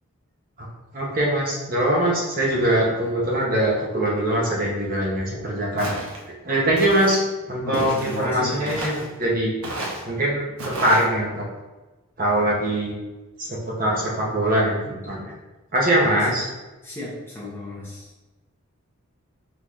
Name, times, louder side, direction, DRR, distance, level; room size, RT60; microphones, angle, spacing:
voice 1, 0.9-5.9 6.4-7.2 7.5-9.5 10.1-11.4 12.2-13.0 13.4-15.3 15.7-16.5, right 1 dB, 40° right, -3 dB, 0.9 m, -22 dB
Walk footsteps, 5.8-6.2 6.8-7.2 7.7-8.2 8.7-9.1 9.6-10.0 10.6-11.1, right 1 dB, 75° right, 1.0 m, -31 dB
voice 2, 7.6-8.7 16.0-16.3 16.8-18.1, left 1 dB, 10° left, -6 dB, 1.0 m, -34 dB
4.1 x 4.0 x 3.1 m, 1.1 s
head